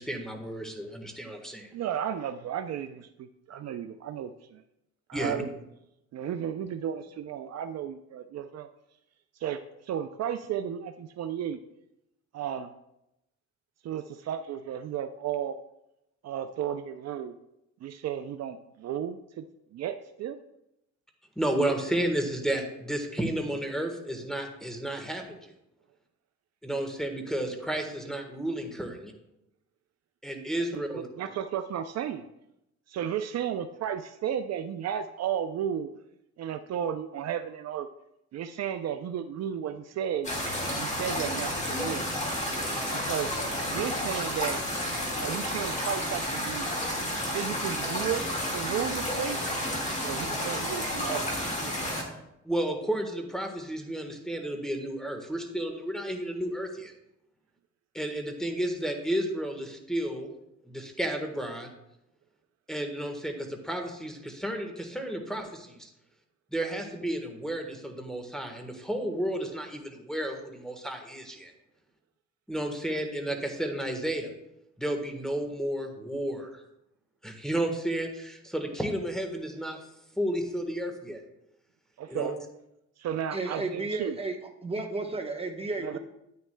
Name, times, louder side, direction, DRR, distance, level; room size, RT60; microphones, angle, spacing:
voice 1, 0.0-1.7 5.1-5.4 21.3-25.5 26.6-29.1 30.2-31.1 52.4-56.9 57.9-60.3 60.6-61.7 62.7-65.9 66.5-71.5 72.5-74.3 74.8-76.6 77.2-79.8 80.2-81.2 82.1-82.3, right 1 dB, ahead, 4 dB, 1.3 m, -32 dB
voice 2, 1.7-4.6 5.1-5.5 6.1-8.7 9.4-11.6 12.3-12.7 13.8-15.6 16.2-17.3 17.8-19.4 19.7-20.4 30.7-30.8 31.2-32.3 32.9-35.9 36.4-37.9 38.3-40.3 40.7-42.0 43.1-43.3 43.7-44.6 45.2-46.7 47.3-48.3 48.5-49.4 50.0-51.3 51.6-51.9 82.0-82.3 83.0-84.2 85.8-86.0, right 9 dB, 60° right, 9 dB, 0.5 m, -33 dB
sound 1, 40.2-52.0, left 1 dB, 25° left, 1.9 m, -31 dB
voice 3, 83.3-84.4 84.6-86.0, right 3 dB, 20° right, 3 dB, 1.0 m, -33 dB
9.4 x 9.2 x 2.2 m, 0.85 s
cardioid pair, 90°, 30 cm